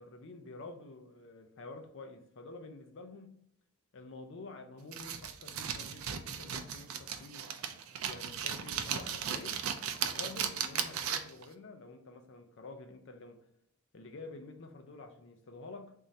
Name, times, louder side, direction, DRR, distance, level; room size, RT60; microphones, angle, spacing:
voice 1, 0.0-3.4 3.9-7.5 8.1-9.6 10.0-13.4 13.9-15.9, left 3 dB, 60° left, 0.5 m, -49 dB
sound 1, 4.9-11.4, right 8 dB, 70° right, 0.4 m, -36 dB
3.6 x 2.7 x 3.1 m
head